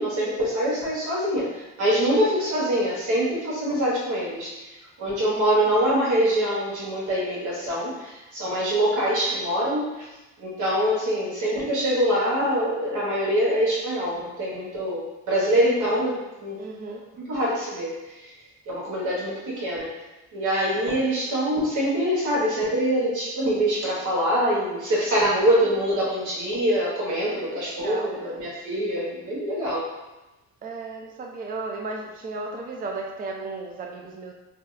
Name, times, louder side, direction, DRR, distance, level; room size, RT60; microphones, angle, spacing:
voice 1, 0.0-4.5 5.0-10.0 10.4-16.6 17.3-18.3 18.7-19.9 20.3-29.8, equal, 80° right, -6 dB, 1.2 m, -24 dB
voice 2, 16.6-17.0 27.4-28.5 30.6-34.3, right 3 dB, 30° right, 1 dB, 0.4 m, -35 dB
2.7 x 2.3 x 3.2 m, 1.1 s
cardioid pair, 90°, 30 cm